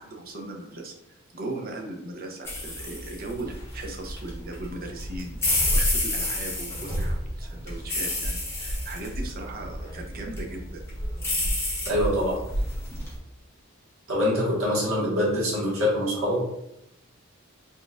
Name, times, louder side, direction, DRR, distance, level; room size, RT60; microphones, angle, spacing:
voice 1, 0.0-10.8, right 2 dB, 45° right, 1 dB, 0.7 m, -38 dB
sound 1, 2.4-13.1, left 1 dB, 10° left, 1.1 m, -29 dB
voice 2, 11.9-12.4 14.1-16.4, left 1 dB, 70° right, -6 dB, 1.5 m, -24 dB
4.0 x 4.0 x 2.4 m, 0.83 s
head